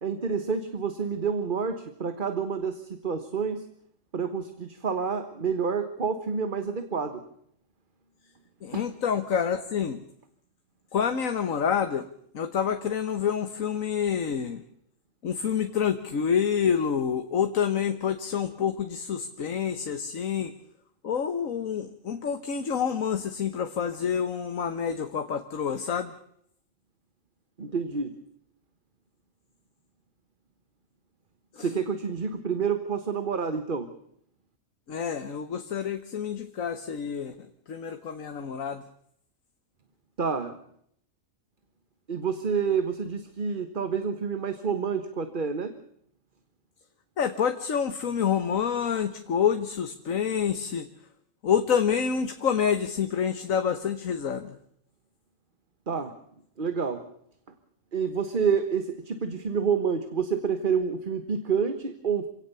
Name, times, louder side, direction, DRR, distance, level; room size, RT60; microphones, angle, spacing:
voice 1, 0.0-3.7 4.1-7.2 8.7-8.8 27.6-28.2 31.6-33.9 40.2-40.6 42.1-45.7 55.9-56.2 56.6-57.1 57.9-62.3, right 6 dB, 40° right, 9 dB, 1.5 m, -28 dB
voice 2, 8.6-10.0 10.9-12.1 12.3-14.6 15.2-20.5 21.0-26.1 31.5-31.7 34.9-37.3 37.7-38.8 47.2-50.9 51.4-54.5, left 7 dB, 85° left, 8 dB, 1.6 m, -27 dB
27.0 x 17.5 x 6.9 m, 0.69 s
omnidirectional pair, 1.4 m